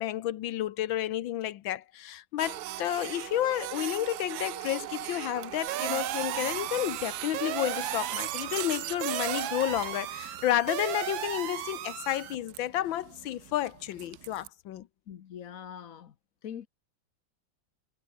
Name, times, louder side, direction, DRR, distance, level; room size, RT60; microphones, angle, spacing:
voice 1, 0.0-14.9, left 13 dB, 85° left, 1.6 m, -31 dB
Printer, 2.4-14.5, right 15 dB, 70° right, 0.9 m, -39 dB
sound 1, 4.7-14.4, right 3 dB, 55° right, 5.0 m, -62 dB
sound 2, 5.7-12.3, right 12 dB, 85° right, 1.7 m, -36 dB
voice 2, 15.1-16.1 16.4-16.7, left 9 dB, 55° left, 1.2 m, -42 dB
omnidirectional pair, 2.1 m